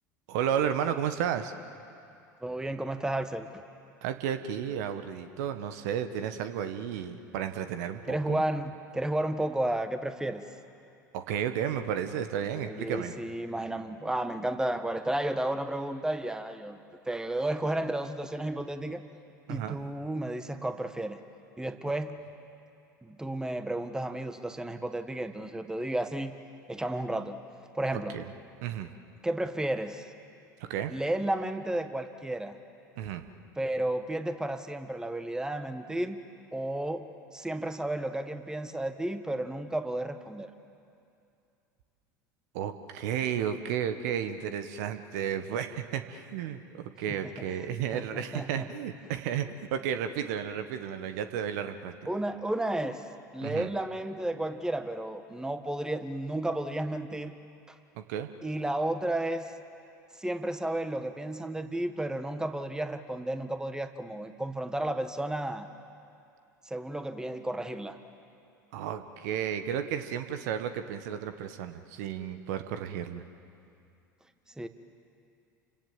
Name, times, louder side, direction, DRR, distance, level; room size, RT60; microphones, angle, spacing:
voice 1, 0.3-1.5 4.0-8.4 11.1-13.2 19.5-19.8 28.1-28.2 28.6-28.9 30.6-30.9 33.0-33.3 42.5-51.9 53.4-53.7 58.0-58.3 68.7-73.2, right 9 dB, 60° right, 9 dB, 1.4 m, -33 dB
voice 2, 2.4-3.5 8.1-10.4 12.7-16.8 17.1-19.0 19.5-21.2 21.6-22.2 23.0-26.3 26.7-27.4 27.7-28.2 29.2-30.1 30.9-32.6 33.6-36.2 36.5-40.5 47.1-47.3 47.9-48.7 52.1-53.0 53.3-57.3 57.7-57.8 58.4-59.5 60.2-65.7 66.6-68.0 74.6-74.7, right 1 dB, 5° right, 8 dB, 1.6 m, -32 dB
29.5 x 25.5 x 7.5 m, 2.5 s
figure-of-eight pair, 75°, 10 cm